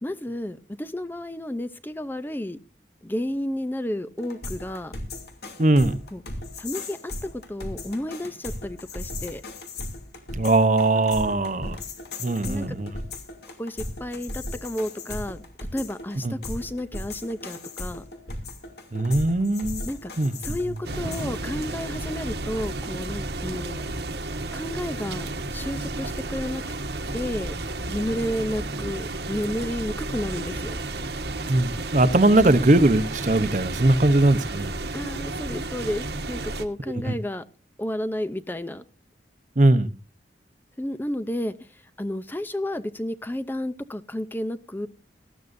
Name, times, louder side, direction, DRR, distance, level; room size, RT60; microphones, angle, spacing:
voice 1, 0.0-2.6 3.0-4.9 6.1-6.2 6.6-9.4 12.5-12.8 13.6-15.4 15.7-18.0 19.9-20.1 20.4-23.8 24.5-26.6 27.1-27.5 27.9-30.8 34.9-37.4 37.8-38.8 40.8-41.5 42.0-44.9, left 1 dB, 10° left, 12 dB, 0.5 m, -31 dB
sound 1, 4.2-21.4, left 2 dB, 65° left, 2.7 m, -36 dB
voice 2, 5.6-6.0 10.4-11.8 12.2-12.9 16.2-16.3 18.9-19.8 20.2-20.3 31.5-34.7 37.1-37.2 39.6-39.9, right 2 dB, 45° right, 13 dB, 0.9 m, -20 dB
sound 2, 20.8-36.6, right 2 dB, 70° right, 1.3 m, -32 dB
18.5 x 13.5 x 2.6 m, 0.33 s
head